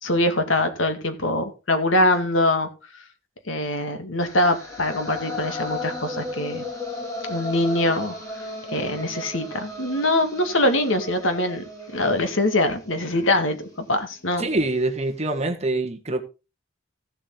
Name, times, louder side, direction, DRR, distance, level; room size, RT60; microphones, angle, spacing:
voice 1, 0.0-2.7 3.5-6.6 7.3-8.5 8.7-11.6 11.9-14.5, left 1 dB, 75° left, 2.1 m, -23 dB
sound 1, 4.2-14.3, left 1 dB, 15° left, 4.4 m, -35 dB
voice 2, 14.4-16.2, right 2 dB, 35° right, 1.5 m, -25 dB
15.0 x 7.5 x 3.8 m
head